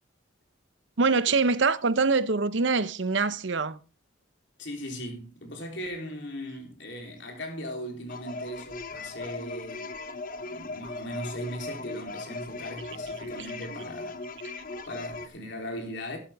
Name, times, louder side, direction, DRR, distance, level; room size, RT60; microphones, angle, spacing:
voice 1, 1.0-3.8, right 4 dB, 65° right, 0.8 m, -24 dB
voice 2, 4.6-9.9 10.5-14.2 14.9-16.2, equal, 60° left, 3.5 m, -38 dB
sound 1, 8.1-15.3, left 3 dB, 45° left, 0.9 m, -38 dB
12.5 x 11.5 x 3.5 m
head